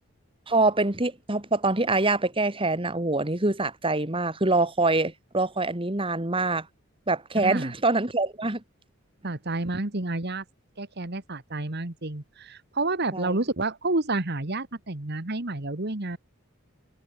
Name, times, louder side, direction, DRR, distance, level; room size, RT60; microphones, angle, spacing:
voice 1, 0.5-6.7 7.1-8.6 13.1-13.4, right 2 dB, 25° right, 1.8 m, -25 dB
voice 2, 9.2-10.4 10.8-16.2, right 2 dB, 50° right, 1.8 m, -29 dB
head